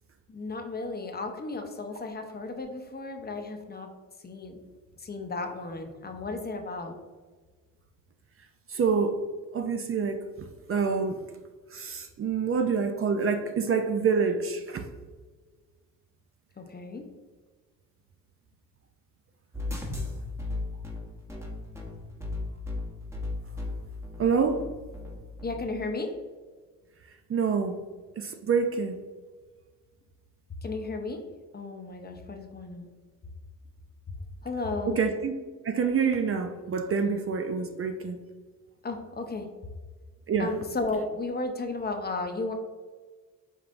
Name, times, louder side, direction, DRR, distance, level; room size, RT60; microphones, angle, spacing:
voice 1, 0.3-3.9 4.2-4.6 5.0-7.0 16.6-17.0 25.4-26.1 30.6-31.2 31.5-32.9 34.4-35.0 38.8-39.5 40.4-42.5, left 3 dB, 30° left, 4 dB, 0.7 m, -34 dB
voice 2, 8.7-9.2 9.5-11.2 11.7-14.8 24.2-24.6 27.3-27.8 28.2-29.0 34.9-35.3 35.6-38.2 40.3-40.5, right 5 dB, 40° right, 6 dB, 0.5 m, -27 dB
sound 1, 19.5-25.6, left 2 dB, 10° right, 0.9 m, -35 dB
5.2 x 3.2 x 2.5 m, 1.4 s
cardioid pair, 85°, 34 cm